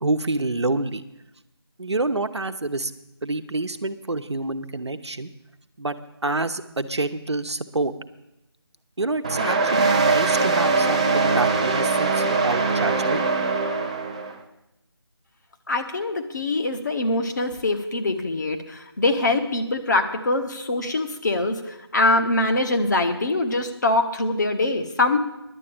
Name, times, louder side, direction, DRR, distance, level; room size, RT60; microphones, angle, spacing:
voice 1, 0.0-1.0 1.8-2.9 3.2-5.3 5.8-5.9 6.2-7.9 9.0-13.2, right 2 dB, 85° right, 8 dB, 0.9 m, -27 dB
sound 1, 9.2-14.3, right 3 dB, 15° right, 0.5 m, -22 dB
voice 2, 15.7-21.5 21.9-25.2, left 2 dB, 45° left, 5 dB, 1.2 m, -23 dB
11.0 x 7.6 x 8.5 m, 0.89 s
figure-of-eight pair, 165°, 14 cm